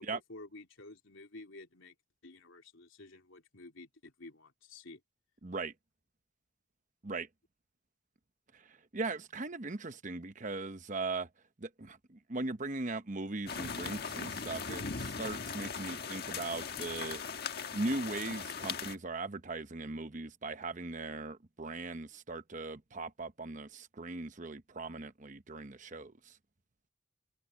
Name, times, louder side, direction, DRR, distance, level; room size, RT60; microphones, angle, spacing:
voice 1, 0.0-1.9 2.2-5.0, left 2 dB, 80° left, 3.4 m, -51 dB
voice 2, 5.4-5.7 7.0-7.3 8.9-11.3 11.6-17.2 17.7-26.1, right 3 dB, 40° right, 1.0 m, -39 dB
sound 1, 13.5-18.9, left 5 dB, 50° left, 1.6 m, -39 dB
open air
head